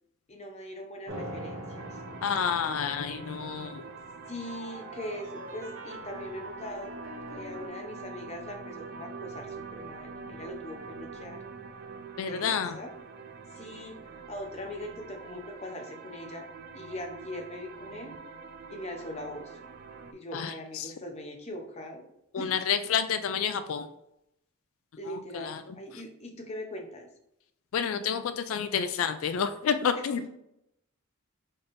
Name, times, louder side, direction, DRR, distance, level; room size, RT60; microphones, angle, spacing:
voice 1, 0.3-1.9 4.3-6.9 7.3-11.4 12.3-12.9 13.5-16.4 16.7-18.1 18.7-19.6 20.1-22.1 22.4-22.5 24.9-27.1 30.1-30.3, left 1 dB, 30° left, 3 dB, 0.7 m, -41 dB
sound 1, 1.1-7.7, equal, 65° right, 0.9 m, -43 dB
sound 2, 1.8-20.1, right 5 dB, 45° right, 0.3 m, -45 dB
voice 2, 2.2-3.8 12.2-12.8 20.3-20.9 22.3-23.9 25.1-25.6 27.7-30.2, left 7 dB, 70° left, 10 dB, 0.3 m, -29 dB
4.3 x 3.4 x 2.5 m, 0.79 s
head